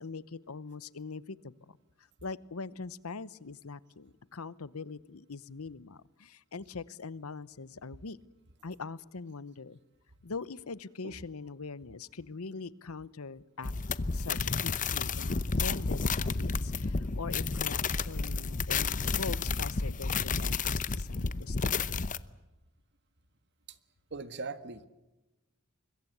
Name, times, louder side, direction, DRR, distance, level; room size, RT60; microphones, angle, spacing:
voice 1, 0.0-1.8 2.2-8.2 8.6-9.8 10.2-13.7 14.1-22.0, left 4 dB, 80° left, 18 dB, 0.9 m, -42 dB
sound 1, 13.6-22.2, left 4 dB, 40° left, 0.7 m, -31 dB
voice 2, 24.1-24.9, right 4 dB, 55° right, 12 dB, 1.5 m, -40 dB
25.0 x 22.0 x 8.1 m, 1.0 s
head